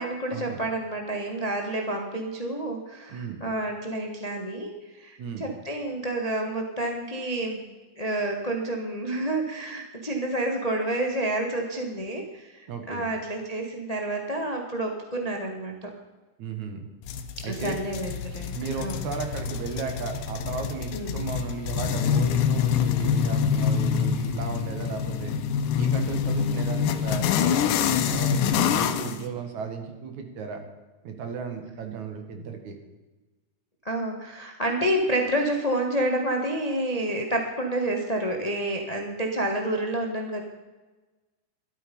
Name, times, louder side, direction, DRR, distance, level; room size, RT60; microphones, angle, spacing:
voice 1, 0.0-7.7 8.0-15.9 17.5-19.0 20.9-21.2 26.4-26.6 33.8-40.4, right 1 dB, 40° left, 2 dB, 0.5 m, -29 dB
voice 2, 3.1-3.4 5.2-5.5 12.7-13.1 16.4-16.9 17.4-17.8 18.5-25.3 25.7-30.6 31.0-32.8, right 5 dB, 70° right, 5 dB, 3.0 m, -35 dB
sound 1, 17.1-29.2, left 7 dB, 90° left, 2.4 m, -26 dB
13.0 x 12.5 x 5.4 m, 1.2 s
omnidirectional pair, 3.6 m